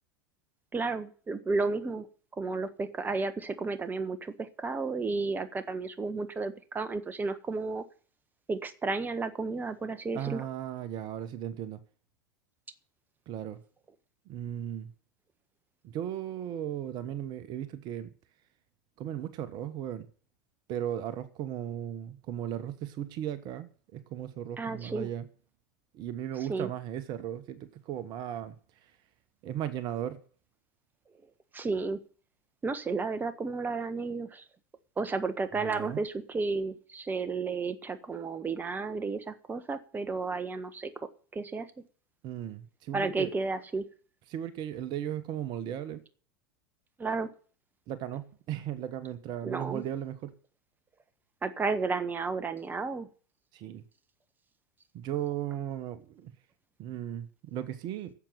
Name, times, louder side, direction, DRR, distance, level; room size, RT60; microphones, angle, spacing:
voice 1, 0.7-2.1 2.4-7.8 8.5-10.4 24.6-25.1 26.5-26.7 31.5-32.0 32.6-34.4 35.0-40.9 41.3-41.7 42.9-43.9 47.0-47.3 49.4-49.8 51.4-53.1, right 4 dB, 20° right, 1.4 m, -32 dB
voice 2, 10.1-11.8 13.3-13.6 14.2-14.9 15.8-18.1 19.0-20.1 20.7-25.3 25.9-29.0 29.4-30.2 35.5-36.0 42.2-43.3 44.3-46.0 47.9-50.3 53.5-53.8 54.9-56.3 56.8-58.1, right 10 dB, 45° right, 1.3 m, -36 dB
12.0 x 7.6 x 9.0 m
figure-of-eight pair, 85°, 10 cm